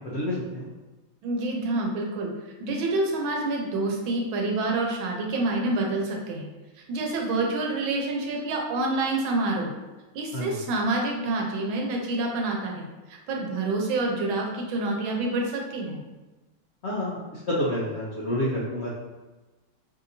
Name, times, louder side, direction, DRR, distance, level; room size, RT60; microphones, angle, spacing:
voice 1, 0.1-0.6 10.3-10.5 16.8-18.9, left 1 dB, 65° left, -7 dB, 0.6 m, -28 dB
voice 2, 1.2-2.3 2.6-6.5 6.9-9.7 10.1-16.0, right 2 dB, 80° right, 0 dB, 1.5 m, -27 dB
5.5 x 2.8 x 2.6 m, 1.2 s
omnidirectional pair, 2.1 m